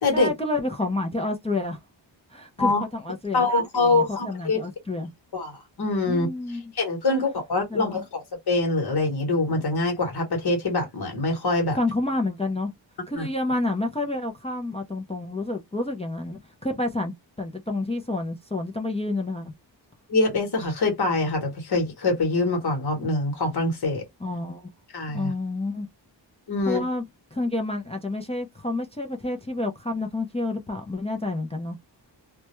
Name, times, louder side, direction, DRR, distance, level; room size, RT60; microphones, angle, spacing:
voice 1, 0.1-1.8 2.3-5.1 6.1-6.7 7.1-7.2 7.7-8.0 11.8-12.7 13.1-19.5 24.2-24.7 25.1-25.9 26.7-27.0 27.3-31.8, left 2 dB, 15° left, 0.4 m, -29 dB
voice 2, 3.3-4.6 5.3-11.8 13.1-13.3 20.1-24.1 24.9-25.3 26.5-26.9, left 2 dB, 55° left, 1.0 m, -24 dB
2.2 x 2.1 x 2.9 m
wide cardioid pair, 120°, 45 cm